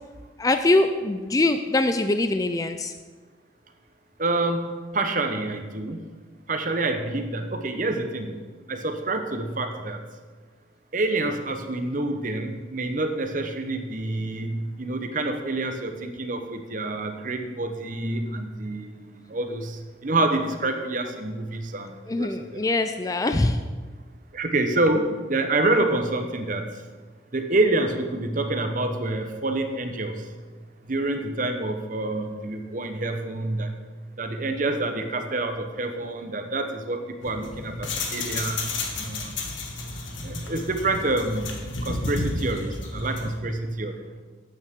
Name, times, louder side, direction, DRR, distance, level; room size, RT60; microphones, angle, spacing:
voice 1, 0.4-2.9 22.1-23.6, left 2 dB, 20° left, 8 dB, 0.3 m, -23 dB
voice 2, 4.2-6.0 6.5-8.4 8.7-10.0 10.9-22.6 24.3-26.8 27.3-30.3 30.9-33.7 34.2-39.3 40.2-44.0, right 2 dB, 45° right, 6 dB, 0.9 m, -27 dB
sound 1, 37.2-43.4, left 2 dB, 85° left, 1.4 m, -32 dB
12.5 x 9.0 x 3.7 m, 1.4 s
head